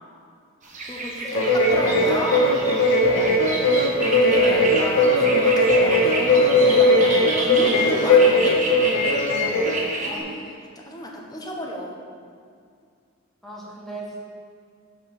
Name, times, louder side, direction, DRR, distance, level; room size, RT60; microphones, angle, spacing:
sound 1, 0.6-10.2, right 2 dB, 40° right, 1.3 m, -31 dB
voice 1, 0.9-2.5 4.1-8.6 10.0-10.3 10.8-11.9, left 1 dB, 20° left, -1 dB, 1.2 m, -32 dB
sound 2, 1.3-9.8, left 1 dB, 70° left, 1.7 m, -19 dB
voice 2, 10.0-10.4 13.4-14.2, right 2 dB, ahead, -5 dB, 1.5 m, -37 dB
6.8 x 6.3 x 6.8 m, 2.2 s
head